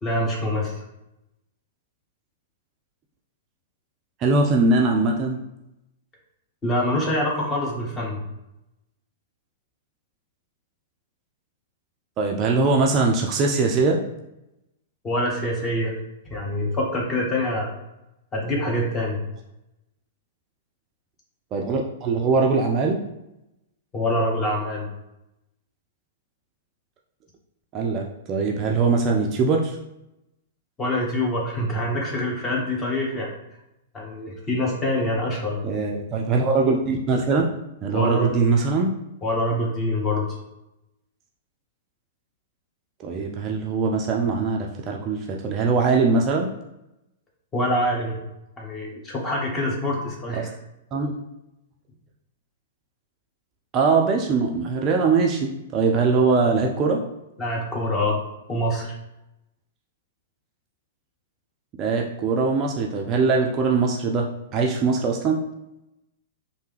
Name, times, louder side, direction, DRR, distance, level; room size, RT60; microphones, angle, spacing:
voice 1, 0.0-0.7 6.6-8.2 15.0-15.9 16.3-17.8 18.3-19.2 23.9-24.9 30.8-33.3 33.9-35.6 37.9-38.3 39.2-40.3 47.5-48.2 48.6-50.5 57.4-58.2 58.5-58.9, left 1 dB, 20° left, -2 dB, 1.0 m, -25 dB
voice 2, 4.2-5.4 12.2-14.0 21.5-23.0 27.7-29.8 35.6-37.5 37.8-38.9 43.0-46.5 50.3-50.5 50.9-51.2 53.7-57.0 61.8-64.3 64.5-65.4, right 4 dB, 30° right, 1 dB, 0.4 m, -21 dB
3.2 x 2.6 x 3.2 m, 0.90 s
figure-of-eight pair, 105°, 0 cm